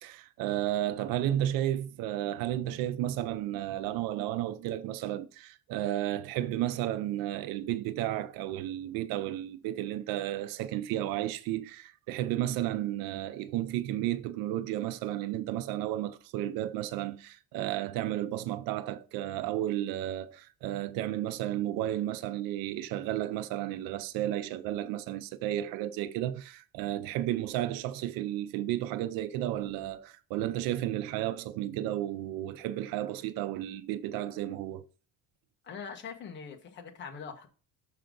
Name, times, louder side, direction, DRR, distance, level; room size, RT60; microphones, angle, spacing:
voice 1, 0.0-34.8, right 13 dB, 90° right, 0.6 m, -33 dB
voice 2, 35.6-37.5, left 6 dB, 35° left, 1.4 m, -42 dB
6.6 x 5.6 x 3.9 m
cardioid pair, 180°, 34 cm